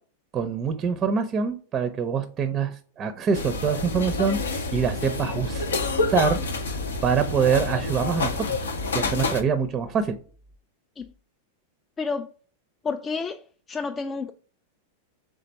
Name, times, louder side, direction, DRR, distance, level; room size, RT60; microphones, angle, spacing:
voice 1, 0.3-5.7 6.1-6.4 7.0-8.6 8.9-10.2, right 6 dB, 30° right, 0.5 m, -25 dB
sound 1, 3.3-9.4, left 3 dB, 85° left, 0.6 m, -28 dB
voice 2, 12.0-12.3 12.8-14.3, left 4 dB, 25° left, 0.3 m, -30 dB
3.6 x 3.3 x 4.0 m
hypercardioid pair, 105°, 0 cm